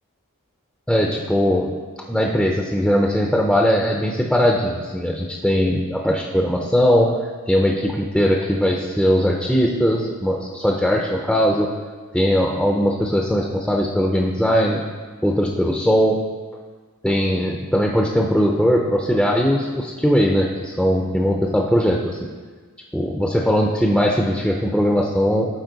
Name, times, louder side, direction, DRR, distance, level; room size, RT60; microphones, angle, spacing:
voice 1, 0.9-1.7 2.1-7.1 7.5-11.7 12.1-14.8 15.2-16.2 17.0-22.2 22.9-25.5, equal, ahead, 0 dB, 0.5 m, -19 dB
12.5 x 4.4 x 3.9 m, 1.5 s
head